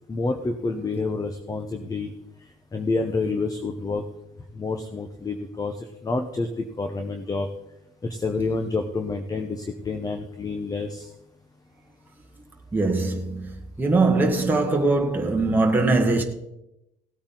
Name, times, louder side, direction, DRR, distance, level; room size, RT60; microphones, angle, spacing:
voice 1, 0.1-2.1 2.7-4.0 4.5-7.5 8.0-11.1, left 3 dB, 20° left, 1.0 m, -28 dB
voice 2, 12.7-16.2, right 3 dB, 10° right, 1.6 m, -21 dB
17.5 x 8.7 x 3.9 m
cardioid pair, 110°, 17 cm